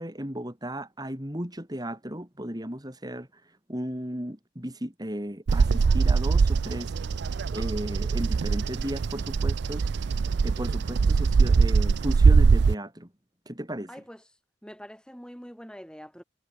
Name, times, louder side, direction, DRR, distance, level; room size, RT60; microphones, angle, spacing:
voice 1, 0.0-7.2 7.5-10.1 10.4-13.1 13.5-14.0, equal, 20° right, 4.2 m, -35 dB
Bird vocalization bird call bird song, 5.5-12.7, right 4 dB, 55° right, 0.4 m, -22 dB
voice 2, 13.9-14.2 14.6-16.2, equal, 5° left, 5.7 m, -44 dB
head